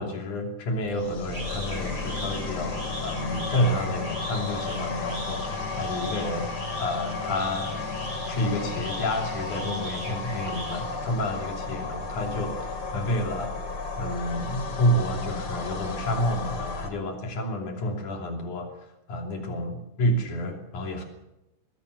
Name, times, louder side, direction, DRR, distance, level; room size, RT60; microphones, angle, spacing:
voice 1, 0.0-6.5 6.8-7.8 8.0-13.5 14.0-18.7 19.1-21.1, left 1 dB, 85° left, 3 dB, 4.5 m, -29 dB
sound 1, 0.8-11.2, left 1 dB, 30° right, 5.4 m, -38 dB
sound 2, 0.9-16.9, left 4 dB, 45° left, 3.3 m, -34 dB
21.0 x 17.5 x 8.2 m, 0.87 s
omnidirectional pair, 3.4 m